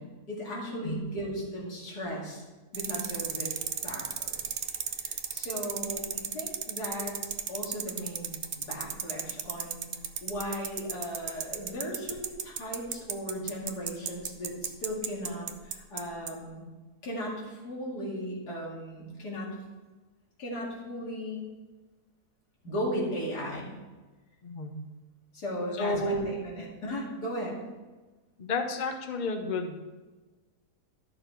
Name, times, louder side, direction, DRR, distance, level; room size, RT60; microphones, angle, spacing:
voice 1, 0.0-2.4 2.7-4.5 5.0-9.9 10.2-16.6 17.0-19.5 20.4-21.4 22.6-23.7 25.3-27.6, equal, 90° left, -3 dB, 2.8 m, -36 dB
sound 1, 2.7-16.0 16.3-16.4, right 8 dB, 60° right, 0.6 m, -33 dB
voice 2, 24.4-24.9 25.8-26.3 28.4-29.8, left 2 dB, 35° left, 5 dB, 0.8 m, -31 dB
11.5 x 6.5 x 4.5 m, 1.2 s
omnidirectional pair, 1.7 m